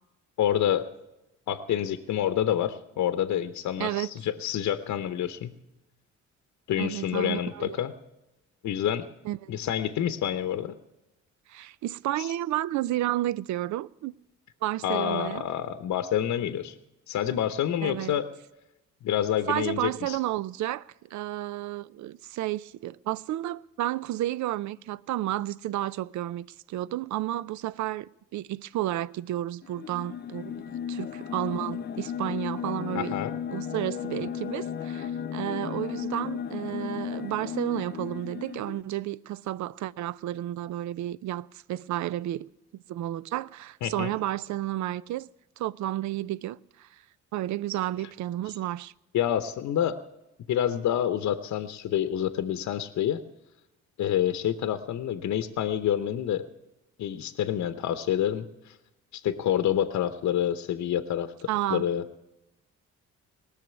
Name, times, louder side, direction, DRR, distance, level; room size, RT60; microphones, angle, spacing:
voice 1, 0.4-0.9 1.5-5.5 6.7-7.9 8.6-9.1 9.5-10.8 14.8-16.7 17.1-18.3 19.0-20.2 32.9-33.4 43.8-44.1 49.1-50.0 50.5-53.2 54.0-56.4 57.0-58.7 59.1-61.3 61.7-62.0, left 10 dB, 70° left, 0.9 m, -27 dB
voice 2, 3.8-4.1 6.8-7.8 9.2-9.5 11.5-14.1 14.6-15.4 17.8-18.2 19.5-33.2 33.5-42.5 42.9-45.3 45.6-46.9 47.3-48.9 61.5-61.9, right 14 dB, 70° right, 0.5 m, -32 dB
sound 1, 29.6-38.8, left 8 dB, 35° left, 0.4 m, -35 dB
18.5 x 6.5 x 9.3 m
cardioid pair, 90°, 30 cm